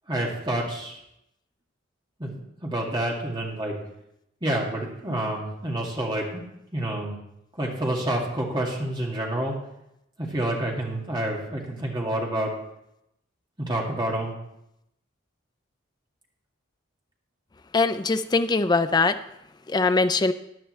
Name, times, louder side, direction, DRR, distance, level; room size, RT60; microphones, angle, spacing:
voice 1, 0.1-1.0 2.2-3.8 4.4-6.4 6.7-7.2 7.6-9.6 10.2-12.5 13.6-14.4, right 1 dB, 20° right, -2 dB, 2.0 m, -28 dB
voice 2, 17.7-19.2 19.7-20.3, left 3 dB, 20° left, 11 dB, 0.4 m, -22 dB
14.0 x 9.9 x 3.2 m, 0.81 s
head